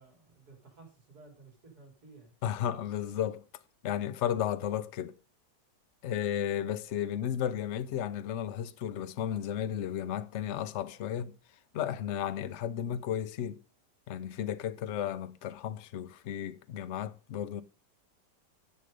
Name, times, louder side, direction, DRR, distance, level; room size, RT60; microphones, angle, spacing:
voice 1, 0.0-2.3, right 3 dB, 65° right, 3.7 m, -55 dB
voice 2, 2.4-3.4 3.8-5.1 6.0-11.3 11.7-13.6 14.1-17.6, left 10 dB, 60° left, 0.8 m, -33 dB
11.0 x 6.5 x 5.1 m
omnidirectional pair, 1.8 m